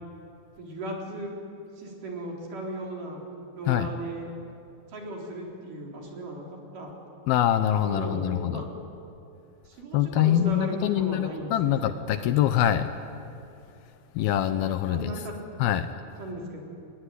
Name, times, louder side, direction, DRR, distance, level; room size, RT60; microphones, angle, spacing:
voice 1, 0.6-1.4 1.8-3.2 3.5-4.3 4.9-6.5 6.7-6.9 7.8-8.7 9.7-11.9 14.9-15.4 16.2-16.6, right 1 dB, 55° right, -1 dB, 5.5 m, -36 dB
voice 2, 7.3-8.6 9.9-12.9 14.1-15.1 15.6-15.9, left 11 dB, 75° left, 10 dB, 2.6 m, -24 dB
26.0 x 22.0 x 9.9 m, 2.7 s
omnidirectional pair, 4.7 m